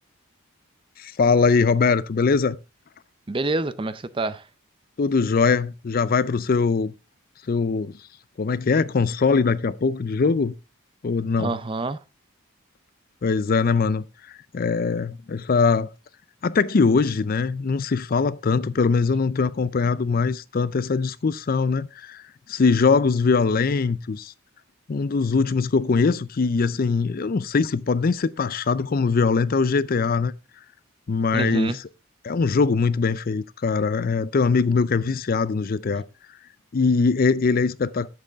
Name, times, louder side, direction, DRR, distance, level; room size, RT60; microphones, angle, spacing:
voice 1, 1.0-2.6 5.0-6.9 7.5-8.0 8.4-10.5 11.0-11.6 13.2-15.9 16.4-22.2 22.5-24.3 24.9-30.3 31.1-31.8 32.2-36.1 36.7-38.1, left 4 dB, 45° left, 0.4 m, -22 dB
voice 2, 3.3-4.4 11.4-12.0 31.3-31.8, right 2 dB, 25° right, 0.5 m, -27 dB
10.5 x 7.7 x 3.4 m
head